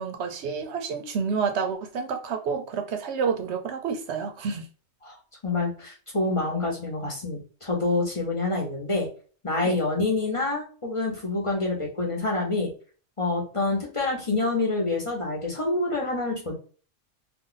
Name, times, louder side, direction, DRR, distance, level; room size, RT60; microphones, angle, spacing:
voice 1, 0.0-4.7 9.6-9.8, right 6 dB, 65° right, 0.9 m, -29 dB
voice 2, 5.4-9.1 9.4-12.7 13.2-16.5, left 2 dB, 30° left, 0.9 m, -27 dB
2.6 x 2.4 x 3.8 m
omnidirectional pair, 1.3 m